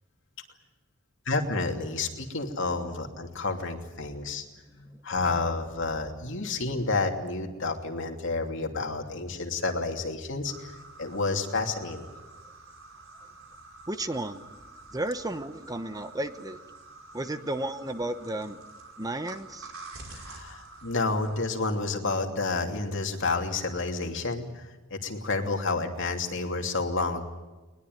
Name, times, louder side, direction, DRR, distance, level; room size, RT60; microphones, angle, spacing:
voice 1, 1.3-4.4 4.8-10.7 11.0-12.1 20.1-27.2, left 3 dB, 65° left, 3 dB, 2.8 m, -30 dB
sound 1, 10.5-21.4, right 3 dB, 75° right, 5.3 m, -48 dB
voice 2, 13.9-14.5 14.9-16.6 17.1-18.6 19.0-19.7, right 1 dB, 20° right, 11 dB, 0.9 m, -33 dB
21.0 x 20.5 x 9.3 m, 1.2 s
head